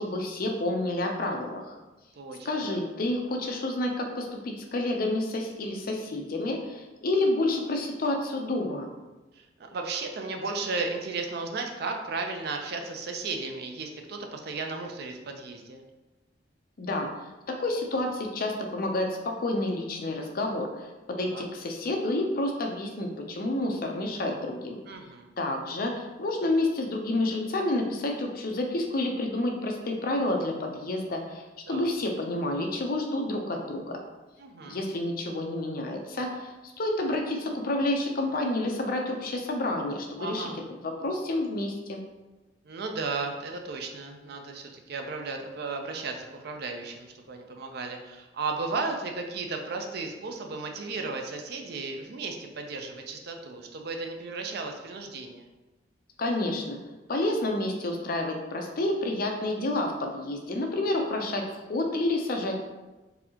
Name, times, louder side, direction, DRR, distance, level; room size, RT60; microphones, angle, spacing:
voice 1, 0.0-1.7 2.4-8.9 16.8-17.1 17.5-24.8 25.4-34.0 34.7-40.5 40.8-42.0 56.2-56.8 57.1-62.6, left 2 dB, 55° left, 3 dB, 0.5 m, -29 dB
voice 2, 2.2-2.8 9.4-15.8 21.2-21.4 24.9-25.3 31.7-31.9 34.4-34.8 40.2-40.6 42.6-55.5, right 3 dB, 60° right, 4 dB, 0.5 m, -35 dB
4.0 x 2.7 x 2.8 m, 1.1 s
head